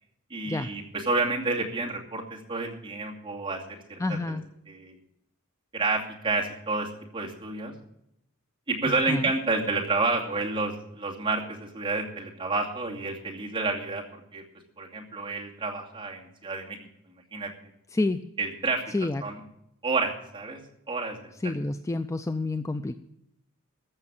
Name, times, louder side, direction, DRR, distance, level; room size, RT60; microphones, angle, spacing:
voice 1, 0.3-4.0 4.3-4.4 4.7-5.0 5.7-7.7 8.7-14.4 14.8-16.8 17.3-17.5 18.4-18.8 19.2-19.4 19.8-20.6 20.9-21.3, right 3 dB, 25° right, -2 dB, 2.5 m, -29 dB
voice 2, 4.0-4.4 9.1-9.3 17.9-18.2 18.9-19.2 21.4-23.0, left 2 dB, 15° left, 9 dB, 0.4 m, -28 dB
14.5 x 6.6 x 8.8 m, 0.79 s
head